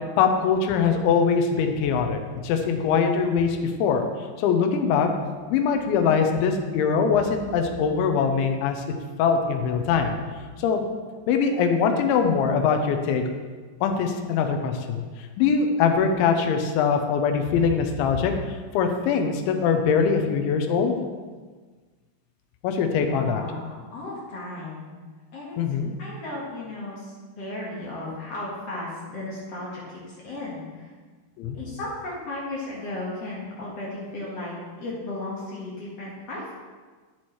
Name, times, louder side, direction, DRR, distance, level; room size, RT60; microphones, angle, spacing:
voice 1, 0.2-4.1 4.4-5.1 5.5-8.8 9.2-10.2 10.6-10.8 11.3-13.2 13.8-15.0 15.4-18.3 18.7-21.0 22.6-23.4 25.6-25.9 31.4-31.6, left 6 dB, 90° left, 5 dB, 3.2 m, -22 dB
voice 2, 23.0-24.9 25.3-25.6 26.0-30.9 31.5-36.5, left 2 dB, 55° left, -5 dB, 1.8 m, -35 dB
11.5 x 8.6 x 3.2 m, 1.4 s
omnidirectional pair, 5.1 m